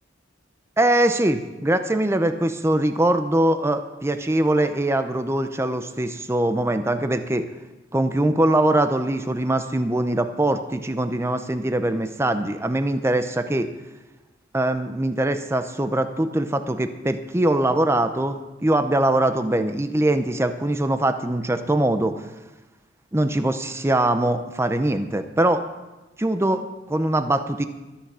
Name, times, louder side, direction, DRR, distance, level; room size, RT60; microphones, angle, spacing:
voice 1, 0.8-7.5 7.9-13.7 14.5-22.1 23.1-25.6 26.2-27.7, right 1 dB, 15° right, 8 dB, 0.7 m, -22 dB
13.0 x 10.0 x 6.2 m, 1.1 s
head